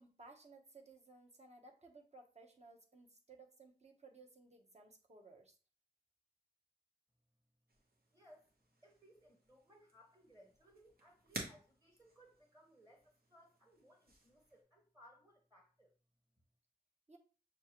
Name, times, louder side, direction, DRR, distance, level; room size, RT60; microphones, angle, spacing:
voice 1, 0.0-5.6 17.1-17.2, right 3 dB, 40° right, 3 dB, 0.9 m, -60 dB
sound 1, 7.7-14.6, right 2 dB, 65° right, 1.2 m, -54 dB
voice 2, 8.1-8.5 8.8-15.9, equal, 20° right, 1 dB, 1.3 m, -65 dB
6.2 x 2.4 x 3.0 m, 0.35 s
wide cardioid pair, 55°, 17 cm